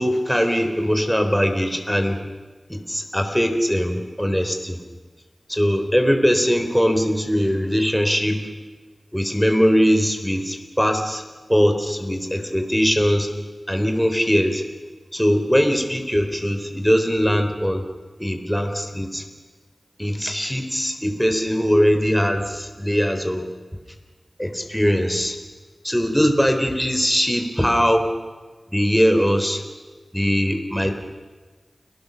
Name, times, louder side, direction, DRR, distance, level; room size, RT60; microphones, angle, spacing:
voice 1, 0.0-2.3 2.7-4.8 5.5-8.5 9.1-11.2 11.5-13.3 13.7-14.6 15.1-17.8 18.2-19.2 20.0-23.5 24.4-25.4 25.8-28.1 28.7-29.6 30.1-30.9, equal, 5° left, 6 dB, 3.8 m, -21 dB
30.0 x 18.5 x 7.0 m, 1.3 s
cardioid pair, 45°, 0 cm